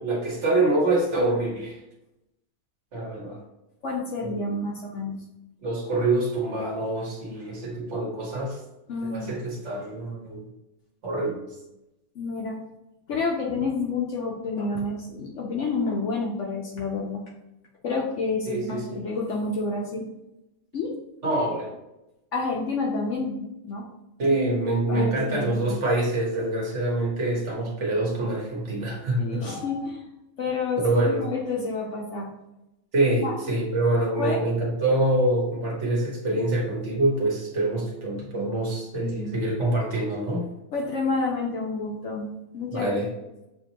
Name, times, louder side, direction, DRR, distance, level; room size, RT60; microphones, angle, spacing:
voice 1, 0.0-1.8 2.9-3.4 4.2-4.7 5.6-8.6 9.0-10.5 11.0-11.5 18.5-19.0 21.2-21.7 24.2-29.4 30.8-31.2 32.9-40.5 42.7-43.1, right 2 dB, 50° right, -2 dB, 1.3 m, -25 dB
voice 2, 3.8-5.2 8.9-9.4 12.2-12.6 13.1-17.2 17.8-20.1 20.7-20.9 22.3-23.9 24.9-25.8 29.2-30.1 30.4-32.3 33.2-33.3 34.2-34.4 39.0-39.5 40.7-42.9, left 3 dB, 60° left, -1 dB, 0.9 m, -29 dB
6.6 x 2.6 x 2.9 m, 0.93 s
omnidirectional pair, 1.6 m